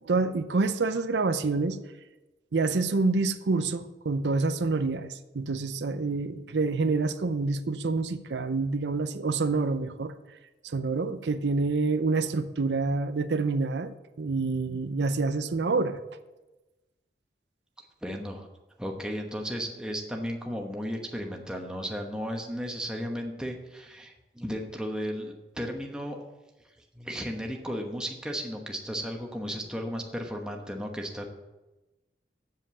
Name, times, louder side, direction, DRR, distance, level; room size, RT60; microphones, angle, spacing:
voice 1, 0.0-1.8 2.5-10.1 10.6-16.0, right 3 dB, 80° right, 10 dB, 0.6 m, -27 dB
voice 2, 18.0-18.5 18.8-26.3 26.9-31.3, equal, 5° right, 1 dB, 1.0 m, -34 dB
7.6 x 7.5 x 6.9 m, 1.1 s
head